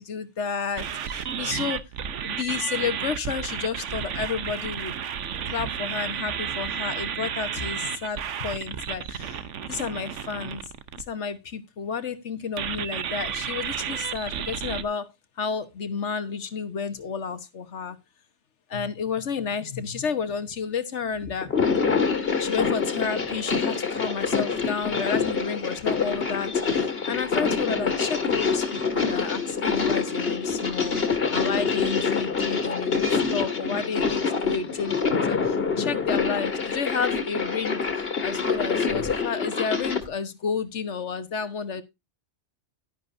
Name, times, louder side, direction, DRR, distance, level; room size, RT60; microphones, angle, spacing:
voice 1, 0.0-1.8 2.2-5.0 5.5-10.6 11.0-15.1 15.4-18.0 18.7-21.5 22.4-31.0 31.3-41.8, left 6 dB, 75° left, 1.5 m, -31 dB
sound 1, 0.8-11.0 12.6-14.8, right 8 dB, 90° right, 1.2 m, -32 dB
sound 2, 21.4-40.0, left 5 dB, 55° left, 2.3 m, -26 dB
12.0 x 10.5 x 2.6 m
omnidirectional pair, 1.2 m